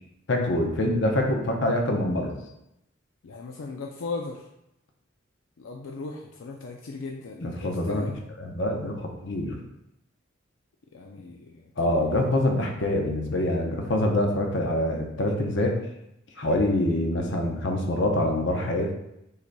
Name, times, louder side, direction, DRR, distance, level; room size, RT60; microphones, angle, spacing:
voice 1, 0.3-2.3 7.4-8.0 8.4-9.6 11.8-15.8 16.4-18.9, left 1 dB, 65° left, 2 dB, 0.8 m, -25 dB
voice 2, 3.2-4.5 5.6-8.1 10.9-12.1, left 3 dB, 85° left, 1 dB, 0.5 m, -38 dB
5.8 x 4.0 x 2.2 m, 0.83 s
head